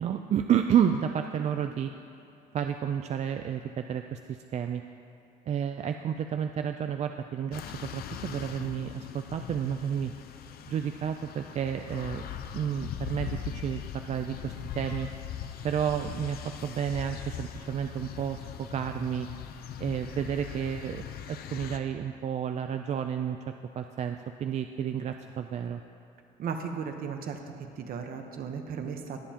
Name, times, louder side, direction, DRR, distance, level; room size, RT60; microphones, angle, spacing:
voice 1, 0.0-1.9 2.5-4.8 5.5-10.1 10.7-12.2 12.5-15.1 15.6-19.3 19.8-23.4 23.7-25.8, right 8 dB, 40° right, 6 dB, 0.4 m, -31 dB
sound 1, 7.5-21.8, left 9 dB, 65° left, 0.6 m, -40 dB
voice 2, 26.4-27.4 27.8-29.2, right 6 dB, 60° right, 5 dB, 1.0 m, -35 dB
21.0 x 7.1 x 2.9 m, 2.7 s
cardioid pair, 110°, 17 cm